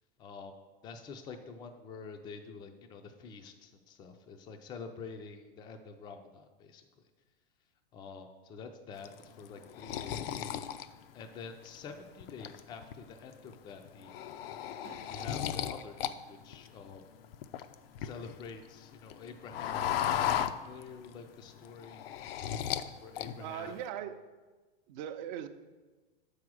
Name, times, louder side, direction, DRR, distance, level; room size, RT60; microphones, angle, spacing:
voice 1, 0.2-0.6 0.8-6.8 7.9-10.4 10.7-10.9 11.1-14.1 15.0-17.0 18.0-22.0 23.0-23.8, left 5 dB, 15° left, 5 dB, 0.3 m, -47 dB
sound 1, 9.0-11.8 12.2-12.9 13.3-13.5 13.9-16.1 16.4-18.5 18.8-21.1 21.5-22.9 23.2-23.8, left 10 dB, 75° left, 0.5 m, -35 dB
sound 2, 12.9-13.1 13.5-13.6 14.6-15.5 16.3-16.4 17.9-18.0, right 7 dB, 80° right, 0.8 m, -54 dB
voice 2, 23.4-24.2 24.9-25.5, right 10 dB, 50° right, 9 dB, 0.6 m, -39 dB
7.1 x 4.9 x 6.1 m, 1.3 s
supercardioid pair, 140°, 29 cm